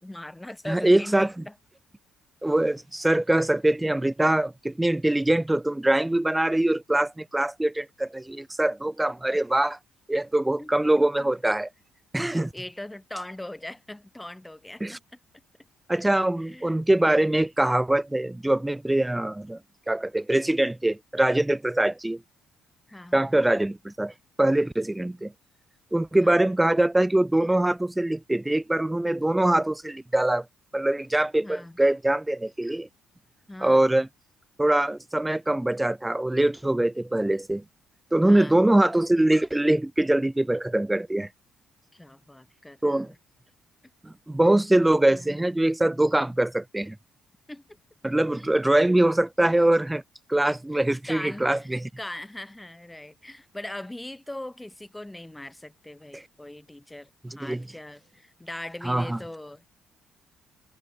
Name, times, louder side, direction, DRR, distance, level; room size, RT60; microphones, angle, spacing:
voice 1, 0.0-1.5 10.6-11.3 12.3-15.2 16.4-16.8 22.9-23.3 26.2-26.4 31.4-31.8 33.5-33.9 38.2-38.6 41.9-43.1 44.4-44.7 45.1-45.4 47.5-47.8 48.5-48.6 49.6-49.7 50.7-59.6, left 1 dB, 10° left, 2.8 m, -41 dB
voice 2, 0.7-1.3 2.4-9.8 10.1-11.7 12.1-12.5 14.8-15.0 15.9-19.6 19.9-22.2 23.1-24.1 24.4-25.3 25.9-30.4 30.7-32.9 33.6-34.1 34.6-37.6 38.1-41.3 42.8-43.1 44.0-47.0 48.0-50.0 50.3-51.8 56.1-56.2 57.4-57.6 58.8-59.2, right 1 dB, 10° right, 0.6 m, -23 dB
hypercardioid pair, 50°, 0 cm